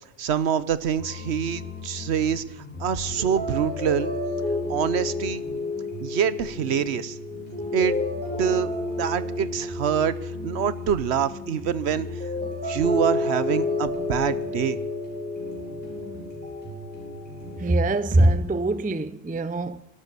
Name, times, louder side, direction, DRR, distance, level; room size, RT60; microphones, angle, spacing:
voice 1, 0.2-2.4 2.8-4.1 4.7-5.4 6.0-7.2 7.7-8.0 8.4-8.7 9.0-12.1 12.6-14.8, right 8 dB, 75° right, 1.0 m, -25 dB
sound 1, 1.0-17.8, left 2 dB, 10° left, 5.8 m, -31 dB
voice 2, 17.6-19.8, right 1 dB, 10° right, 0.4 m, -22 dB
13.0 x 12.5 x 6.8 m
omnidirectional pair, 1.1 m